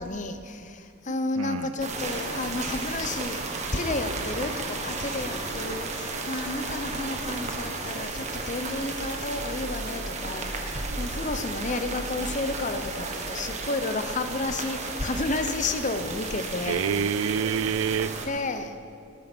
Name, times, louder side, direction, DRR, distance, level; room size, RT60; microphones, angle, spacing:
voice 1, 0.0-16.9 18.2-18.7, left 2 dB, 35° left, 0.9 m, -31 dB
voice 2, 1.4-1.7 10.9-11.0 16.6-18.3, right 7 dB, 75° right, 0.4 m, -27 dB
sound 1, 1.8-18.3, right 3 dB, 35° right, 1.6 m, -33 dB
20.5 x 9.4 x 6.2 m
head